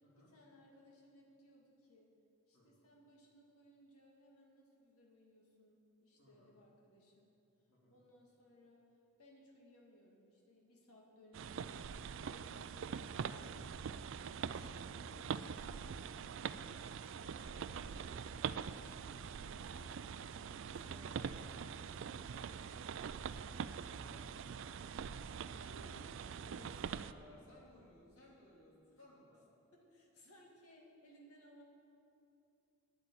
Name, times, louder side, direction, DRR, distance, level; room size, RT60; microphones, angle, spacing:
voice 1, 0.2-2.1 2.5-7.3 7.9-8.8 9.2-13.8 14.4-16.5 17.3-17.7 19.5-20.0 25.6-26.4 26.9-27.0 29.7-31.6, equal, 85° left, -1 dB, 2.2 m, -63 dB
voice 2, 6.2-6.5 7.7-8.0 11.6-12.4 17.2-18.2 18.9-20.0 20.6-24.6 26.4-29.4, left 1 dB, 70° left, -5 dB, 3.6 m, -62 dB
sound 1, 11.3-27.1, right 6 dB, 60° right, 0.3 m, -44 dB
9.4 x 8.5 x 8.7 m, 2.7 s
head